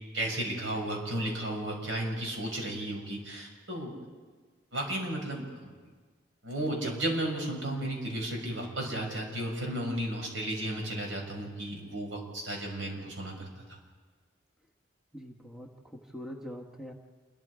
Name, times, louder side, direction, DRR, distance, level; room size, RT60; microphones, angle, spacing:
voice 1, 0.1-4.0 4.7-5.7 6.4-13.5, right 1 dB, 90° right, 1 dB, 6.4 m, -34 dB
voice 2, 15.1-16.9, equal, ahead, 1 dB, 1.4 m, -43 dB
28.5 x 23.0 x 5.0 m, 1.4 s
head